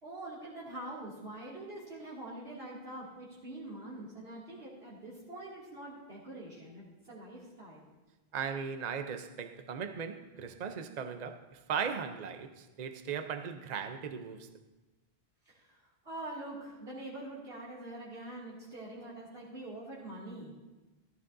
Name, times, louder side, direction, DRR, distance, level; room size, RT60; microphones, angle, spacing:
voice 1, 0.0-7.9 15.5-20.5, right 1 dB, 70° right, 2.6 m, -45 dB
voice 2, 8.3-14.5, right 7 dB, 45° right, 0.7 m, -38 dB
14.5 x 13.5 x 2.6 m
omnidirectional pair, 1.0 m